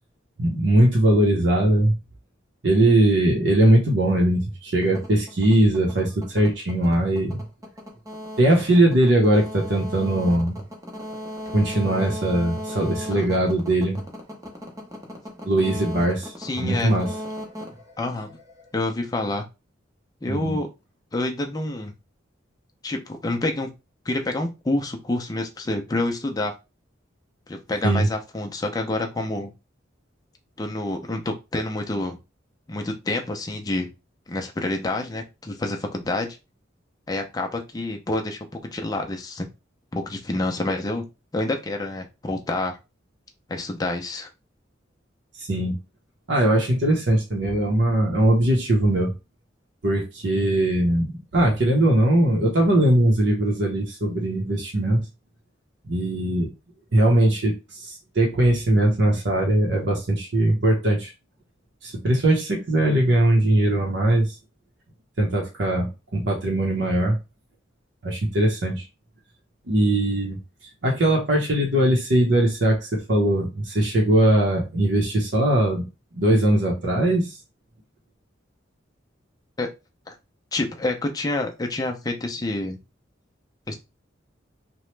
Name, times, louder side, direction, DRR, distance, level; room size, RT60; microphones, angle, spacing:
voice 1, 0.4-1.9 2.6-7.4 8.4-10.6 11.5-14.0 15.5-16.3 16.6-17.1 20.3-20.6 27.8-28.1 45.4-45.8 46.3-49.1 49.8-55.0 55.9-56.5 56.9-57.5 57.8-61.1 61.8-64.3 65.2-67.2 68.0-68.8 69.7-70.4 70.8-75.9 76.1-77.4, right 1 dB, 70° right, -1 dB, 0.7 m, -20 dB
sound 1, 4.8-18.7, equal, 15° right, 0.7 m, -37 dB
voice 2, 16.4-16.9 18.0-18.3 18.7-19.4 20.2-20.7 21.1-21.9 22.8-23.7 24.1-26.5 27.5-29.5 30.6-32.2 32.7-33.9 34.3-36.3 37.1-38.4 38.7-39.5 39.9-41.0 41.3-42.8 43.5-44.3 79.6-79.7 80.1-80.2 80.5-82.8 83.7-83.8, left 2 dB, 20° left, 2 dB, 0.5 m, -27 dB
2.9 x 2.1 x 3.1 m, 0.27 s
head